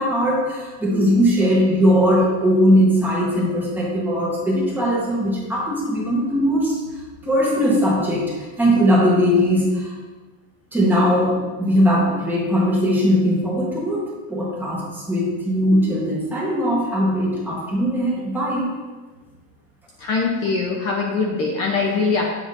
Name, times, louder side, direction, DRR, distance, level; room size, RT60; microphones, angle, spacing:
voice 1, 0.0-6.8 7.2-9.9 10.7-18.7, equal, 5° right, -6 dB, 1.1 m, -19 dB
voice 2, 20.0-22.3, left 4 dB, 35° left, 0 dB, 0.7 m, -22 dB
7.4 x 5.1 x 2.5 m, 1.3 s
supercardioid pair, 160°, 42 cm